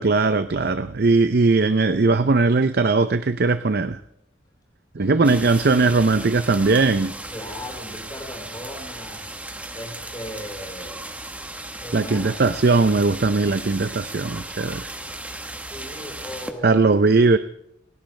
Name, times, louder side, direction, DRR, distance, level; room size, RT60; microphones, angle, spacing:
voice 1, 0.0-4.0 4.9-7.1 11.9-14.9 16.6-17.4, right 3 dB, 55° right, 12 dB, 0.6 m, -19 dB
voice 2, 4.9-5.4 7.3-9.3 9.7-11.1 11.8-12.4 15.7-16.9, equal, 20° left, 1 dB, 4.5 m, -37 dB
sound 1, 5.2-16.5, right 1 dB, 5° right, 1.2 m, -36 dB
29.0 x 10.5 x 3.3 m, 0.78 s
head